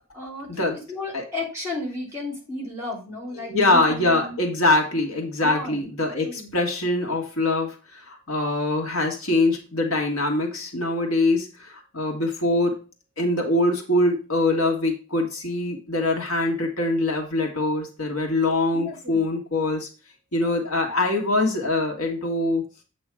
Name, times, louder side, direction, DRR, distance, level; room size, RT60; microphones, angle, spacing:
voice 1, 0.1-4.4 5.4-5.9 6.2-6.5 18.7-19.2, left 2 dB, 15° right, -2 dB, 3.3 m, -34 dB
voice 2, 3.4-12.8 13.2-19.9 20.3-22.6, left 2 dB, 85° left, 2 dB, 1.7 m, -23 dB
8.0 x 3.1 x 6.1 m, 0.34 s
head